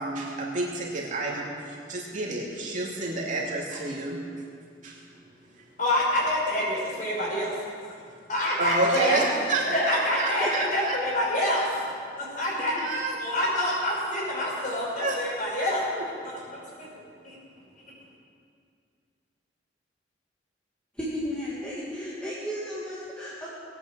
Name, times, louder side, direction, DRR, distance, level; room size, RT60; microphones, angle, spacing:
voice 1, 0.0-4.2 4.8-5.0 8.6-11.3 12.8-13.1 14.9-15.2 15.9-16.0, right 2 dB, 45° right, -3 dB, 2.8 m, -29 dB
voice 2, 5.8-7.5 7.8-7.9 8.3-9.2 9.7-11.9 12.2-12.7 13.2-15.9 16.2-16.4 16.8-16.9 17.2-17.4, left 1 dB, 45° left, -5 dB, 5.6 m, -27 dB
voice 3, 20.9-23.5, equal, 5° left, -8 dB, 2.3 m, -33 dB
19.5 x 9.5 x 7.6 m, 2.3 s
head